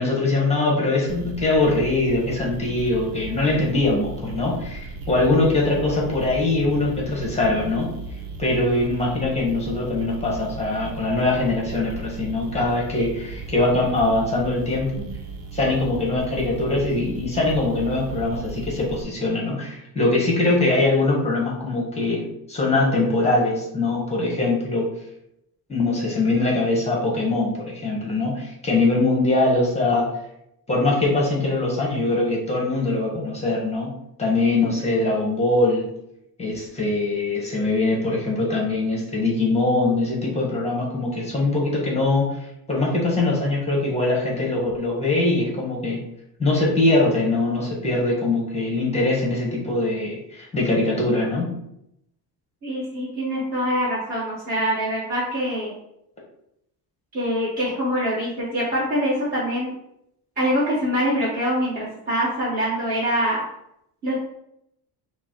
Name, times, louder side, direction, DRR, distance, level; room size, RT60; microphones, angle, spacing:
voice 1, 0.0-7.9 8.4-15.1 15.5-24.9 25.7-30.1 30.7-33.9 34.2-35.9 36.4-42.4 42.7-46.0 46.4-51.5, left 2 dB, 15° left, -3 dB, 1.0 m, -22 dB
sound 1, 1.1-19.0, right 3 dB, 85° right, 0.8 m, -36 dB
voice 2, 52.6-55.7 57.1-59.7 60.4-63.4 64.0-64.1, equal, 20° right, -10 dB, 1.3 m, -24 dB
5.0 x 2.1 x 4.4 m, 0.79 s
cardioid pair, 175°, 42 cm